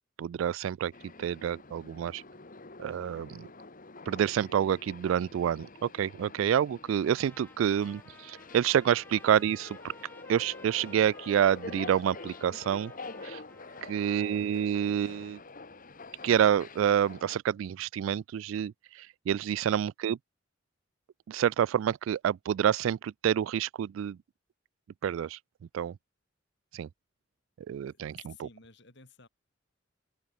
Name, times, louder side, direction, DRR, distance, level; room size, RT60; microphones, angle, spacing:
voice 1, 0.2-0.9 1.2-2.2 2.8-3.5 4.1-9.8 10.3-12.9 13.2-13.4 13.9-15.4 16.2-20.2 21.3-24.2 25.0-25.4 25.7-25.9 26.7-26.9 27.7-28.5, right 9 dB, 85° right, 0.3 m, -28 dB
sound 1, 0.9-17.4, left 3 dB, 45° left, 2.0 m, -47 dB
Trumpet, 7.0-14.4, left 2 dB, 10° left, 1.2 m, -55 dB
voice 2, 13.7-14.1 19.7-19.8 27.9-29.3, left 4 dB, 60° left, 4.5 m, -56 dB
open air
head